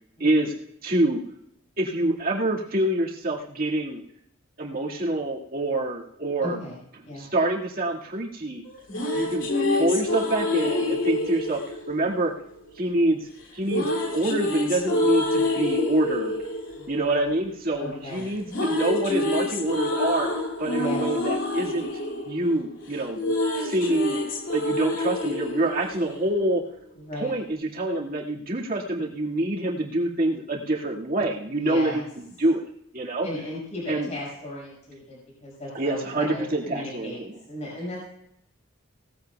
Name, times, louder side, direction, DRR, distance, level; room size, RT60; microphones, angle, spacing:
voice 1, 0.2-0.5 0.8-1.2 1.8-4.0 4.6-6.6 7.1-8.6 9.1-11.6 11.9-12.3 12.8-16.4 16.9-20.3 20.6-21.9 22.2-24.2 24.5-26.6 27.1-32.0 32.4-32.6 32.9-33.3 33.9-34.1 35.7-37.4, right 1 dB, 45° right, -2 dB, 2.0 m, -26 dB
voice 2, 6.4-6.8 7.0-7.3 16.8-17.3 17.8-18.3 20.7-21.0 27.0-27.3 31.5-32.0 33.2-37.2 37.5-38.0, left 1 dB, 35° left, -6 dB, 5.8 m, -36 dB
sound 1, 8.6-12.8 13.7-17.9 18.2-26.7, left 2 dB, 65° left, 2.7 m, -28 dB
18.0 x 14.5 x 2.3 m, 0.76 s
head